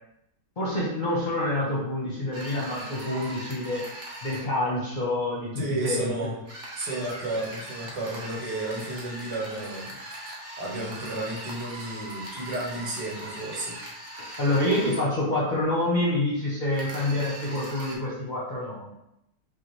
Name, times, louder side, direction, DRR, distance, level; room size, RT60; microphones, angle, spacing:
voice 1, 0.6-3.8 4.2-6.1 14.2-18.9, left 1 dB, 40° left, -6 dB, 0.7 m, -27 dB
sound 1, 2.3-4.5 6.4-15.0 16.7-18.0, right 1 dB, 35° right, 0.9 m, -40 dB
voice 2, 5.6-6.4 6.8-9.9 10.6-13.8, right 2 dB, 85° right, -3 dB, 1.8 m, -32 dB
5.5 x 2.4 x 3.1 m, 0.83 s
omnidirectional pair, 1.8 m